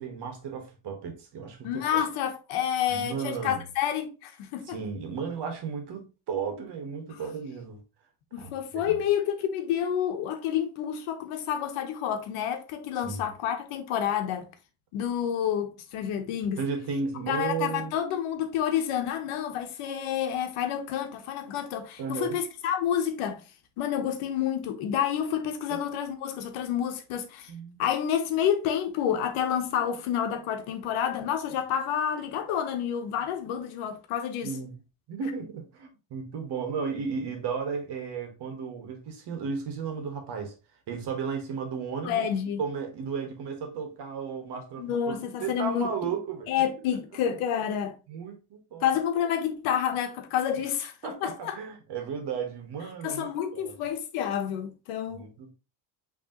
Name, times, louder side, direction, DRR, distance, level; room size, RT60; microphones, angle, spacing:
voice 1, 0.0-2.0 2.9-3.6 4.6-7.8 8.4-8.9 13.0-13.3 16.6-17.9 22.0-22.4 25.7-25.8 27.5-27.8 34.4-34.8 35.1-40.5 40.9-42.2 42.6-45.1 45.4-46.5 46.9-47.0 48.1-48.9 51.0-53.3 53.5-53.7 55.1-55.5, right 5 dB, 55° right, 1.5 m, -34 dB
voice 2, 1.6-4.8 8.3-14.5 14.9-16.6 17.3-23.4 23.8-27.5 27.8-34.5 42.0-42.6 44.8-45.9 46.5-48.0 48.8-51.6 53.0-55.3, left 9 dB, 85° left, 1.1 m, -29 dB
5.4 x 3.3 x 2.9 m
cardioid pair, 115°, 49 cm